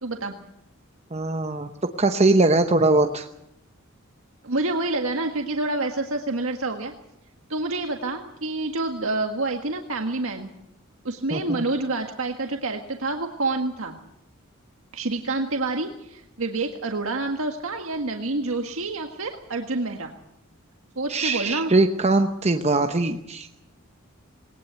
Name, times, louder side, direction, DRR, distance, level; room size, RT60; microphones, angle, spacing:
voice 1, 0.0-0.4 4.4-6.9 7.5-10.5 11.0-14.0 14.9-20.1 20.9-21.7, right 2 dB, 75° right, 4 dB, 1.6 m, -28 dB
voice 2, 1.1-1.7 2.0-3.3 11.3-11.6 21.1-23.5, right 2 dB, 30° right, 6 dB, 0.9 m, -21 dB
20.0 x 19.0 x 8.1 m, 0.78 s
head